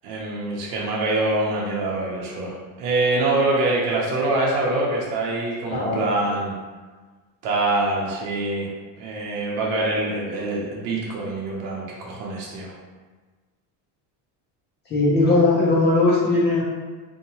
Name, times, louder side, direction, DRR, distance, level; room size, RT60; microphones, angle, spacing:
voice 1, 0.0-6.5 7.4-8.7 9.0-12.7, right 2 dB, 85° right, -4 dB, 0.7 m, -24 dB
voice 2, 5.7-6.1 14.9-16.6, left 2 dB, 25° left, -6 dB, 0.3 m, -19 dB
2.7 x 2.2 x 2.8 m, 1.4 s
cardioid pair, 130°, 47 cm